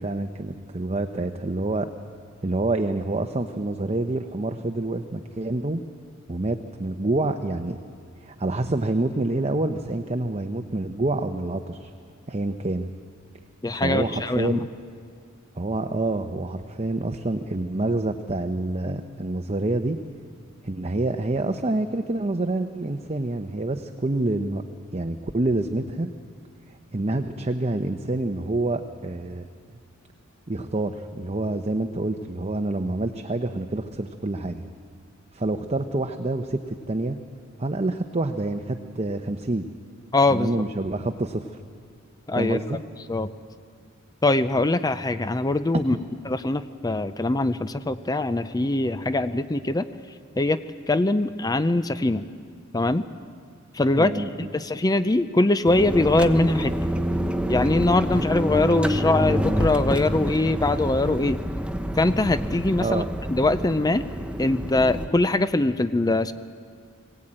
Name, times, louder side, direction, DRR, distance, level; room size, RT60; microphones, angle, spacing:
voice 1, 0.0-1.9 2.4-5.8 6.3-7.8 8.2-11.9 12.3-12.9 13.7-14.6 15.6-20.0 20.6-24.6 24.9-26.1 26.7-29.5 30.5-34.7 35.3-37.2 37.6-39.7 40.3-41.6 42.4-42.8 54.0-54.5 62.8-63.1, right 2 dB, 30° right, 6 dB, 0.8 m, -27 dB
voice 2, 13.6-14.6 40.1-40.5 42.3-42.6 43.1-43.3 44.2-46.0 46.3-49.9 50.4-50.6 50.9-52.3 52.7-53.1 53.7-56.7 57.5-61.4 62.0-63.0 63.3-64.1 64.4-66.3, left 2 dB, 20° left, 12 dB, 0.5 m, -22 dB
sound 1, 55.7-65.1, equal, 5° right, 0.9 m, -27 dB
21.0 x 17.0 x 8.8 m, 2.1 s
head